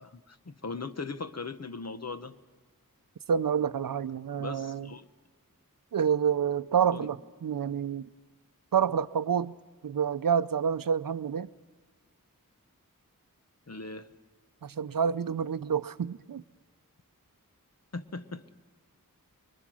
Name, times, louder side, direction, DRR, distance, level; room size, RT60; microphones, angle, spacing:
voice 1, 0.0-2.4 4.4-5.1 6.9-7.1 13.7-14.1 17.9-18.4, left 4 dB, 50° left, 1.0 m, -39 dB
voice 2, 3.3-4.9 5.9-8.1 8.7-9.6 9.8-11.5 14.6-16.4, right 7 dB, 75° right, 0.6 m, -28 dB
25.0 x 23.5 x 6.2 m
wide cardioid pair, 65°, 34 cm